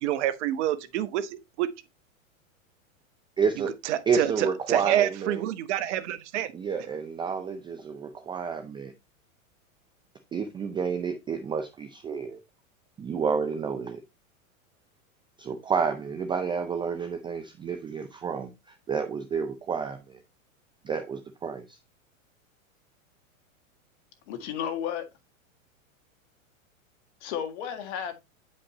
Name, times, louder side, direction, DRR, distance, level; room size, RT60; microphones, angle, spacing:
voice 1, 0.0-1.7 3.8-6.5, right 12 dB, 60° right, 1.1 m, -28 dB
voice 2, 3.4-3.7 4.1-5.4 6.5-8.9 10.3-12.4 13.0-14.0 15.4-20.2 20.8-21.8, right 6 dB, 10° right, 0.4 m, -30 dB
voice 3, 24.3-25.1 27.2-28.2, left 9 dB, 55° left, 1.9 m, -33 dB
9.6 x 5.3 x 2.9 m
hypercardioid pair, 120°, 40 cm